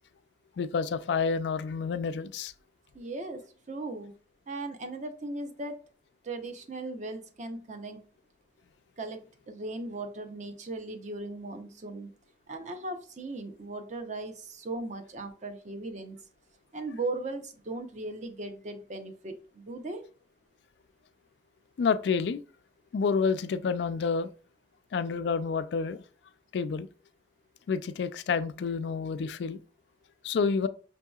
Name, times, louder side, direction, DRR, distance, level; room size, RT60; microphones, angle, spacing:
voice 1, 0.6-2.5 21.8-22.4 22.9-24.3 24.9-26.0 26.5-26.9 27.7-29.6 30.2-30.7, left 5 dB, 70° left, 0.3 m, -29 dB
voice 2, 2.9-3.4 3.7-4.1 4.5-5.8 6.2-8.0 9.0-12.1 12.5-16.2 16.7-20.0, right 2 dB, 40° right, 0.6 m, -38 dB
6.1 x 2.8 x 2.3 m
head